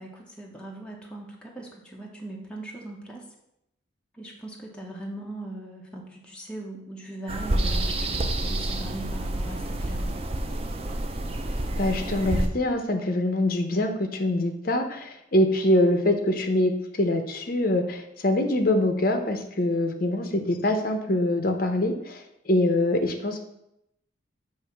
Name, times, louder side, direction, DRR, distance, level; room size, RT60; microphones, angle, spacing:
voice 1, 0.0-3.2 4.1-10.1, right 1 dB, 5° left, -2 dB, 0.8 m, -40 dB
sound 1, 7.3-12.5, right 1 dB, 30° right, 0.4 m, -28 dB
voice 2, 11.8-16.7 17.0-22.2 22.5-23.4, left 1 dB, 45° left, 5 dB, 0.7 m, -24 dB
7.7 x 3.0 x 5.7 m, 0.82 s
head